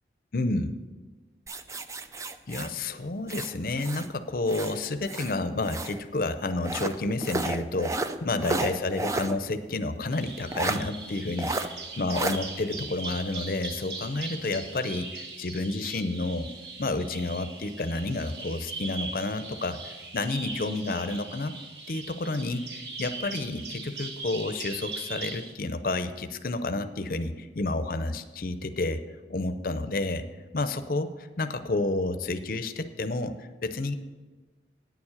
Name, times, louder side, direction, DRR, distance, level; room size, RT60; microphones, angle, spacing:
voice 1, 0.3-0.7 2.5-16.5 16.8-21.5 21.9-29.0 29.3-30.2 30.5-33.9, left 2 dB, 50° left, 10 dB, 0.6 m, -30 dB
sound 1, 1.5-4.1 4.5-6.0 6.6-9.4 9.7-9.8 10.5-10.8 11.4-11.7 12.1-12.4, right 2 dB, 15° right, 0.3 m, -32 dB
Bird vocalization bird call bird song, 10.1-25.5, right 3 dB, 70° right, 1.2 m, -40 dB
9.3 x 7.3 x 6.4 m, 1.3 s
head